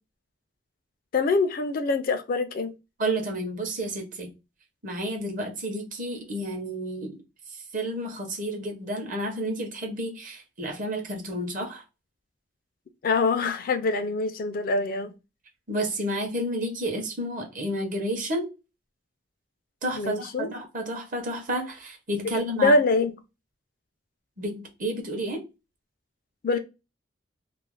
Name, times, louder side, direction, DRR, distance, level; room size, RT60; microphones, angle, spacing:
voice 1, 1.1-2.7 13.0-15.1 20.0-20.5 22.6-23.1 26.4-26.6, left 3 dB, 50° left, 0.3 m, -24 dB
voice 2, 3.0-4.3 4.8-7.2 7.5-11.8 15.7-18.5 19.8-22.8 24.4-25.4, right 1 dB, 45° right, 0.7 m, -31 dB
2.4 x 2.0 x 3.0 m
head